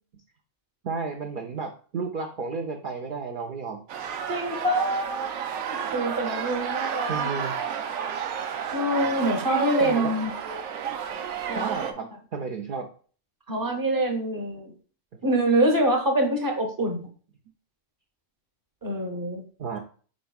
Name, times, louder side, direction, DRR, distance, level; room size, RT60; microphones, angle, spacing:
voice 1, 0.8-3.8 7.1-7.6 9.8-10.1 11.5-12.9 19.6-19.8, right 5 dB, 60° right, 1 dB, 0.5 m, -32 dB
sound 1, 3.9-11.9, right 7 dB, 85° right, 1.0 m, -31 dB
voice 2, 4.3-5.3 5.7-7.3 7.6-7.7 8.7-10.3 11.5-11.7 13.5-14.7 15.2-17.1 18.8-19.4, right 1 dB, 20° right, 2 dB, 0.7 m, -25 dB
5.1 x 4.4 x 2.3 m, 0.41 s
omnidirectional pair, 1.4 m